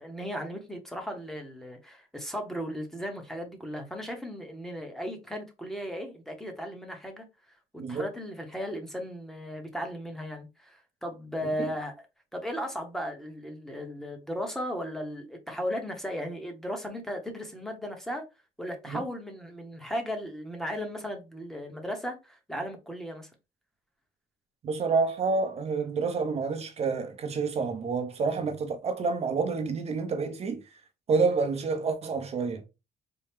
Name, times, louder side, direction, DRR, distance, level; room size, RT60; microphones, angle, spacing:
voice 1, 0.0-7.2 7.7-11.9 12.3-18.2 18.6-23.3, equal, 5° left, 1.1 m, -36 dB
voice 2, 24.6-30.6 31.1-32.6, right 4 dB, 40° right, 0.8 m, -28 dB
4.4 x 2.3 x 3.5 m
cardioid pair, 130°, 16 cm